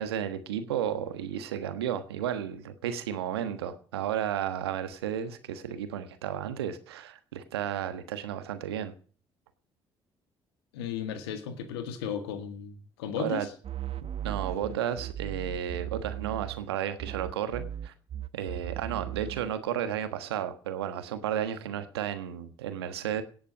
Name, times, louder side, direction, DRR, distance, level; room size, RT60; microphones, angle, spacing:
voice 1, 0.0-8.9 13.2-13.5 14.2-17.9 18.3-23.2, right 10 dB, 85° right, 10 dB, 1.4 m, -33 dB
voice 2, 10.7-13.5, left 8 dB, 80° left, 9 dB, 1.9 m, -35 dB
sound 1, 13.6-16.7 17.0-19.5, right 11 dB, 50° right, 0.9 m, -37 dB
17.5 x 8.0 x 6.2 m, 0.43 s
hypercardioid pair, 50°, 13 cm